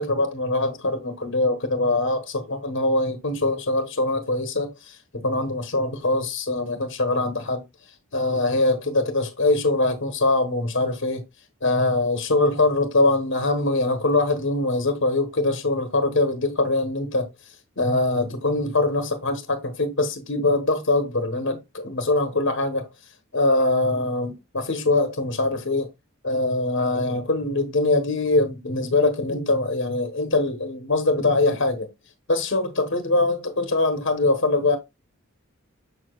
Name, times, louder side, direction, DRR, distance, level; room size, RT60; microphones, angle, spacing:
voice 1, 0.0-7.6 8.1-11.2 11.6-17.3 17.8-22.9 23.3-25.9 26.2-31.9 32.3-34.8, left 2 dB, 60° left, 1.2 m, -23 dB
7.0 x 6.8 x 2.3 m
head